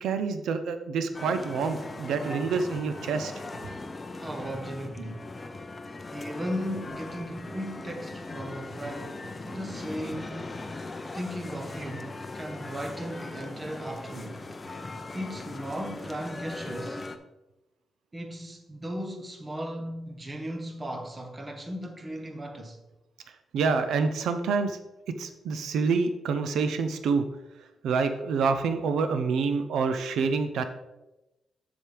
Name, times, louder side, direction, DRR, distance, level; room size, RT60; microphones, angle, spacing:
voice 1, 0.0-3.3 23.5-24.8 25.2-27.2 27.8-30.6, right 5 dB, 85° right, 0.6 m, -27 dB
sound 1, 1.1-17.2, left 3 dB, 25° left, 0.6 m, -39 dB
voice 2, 4.1-5.3 6.1-10.5 11.1-14.4 15.1-17.1 18.1-22.8, equal, 20° right, 1.0 m, -36 dB
7.6 x 7.1 x 3.4 m
cardioid pair, 125°, 0 cm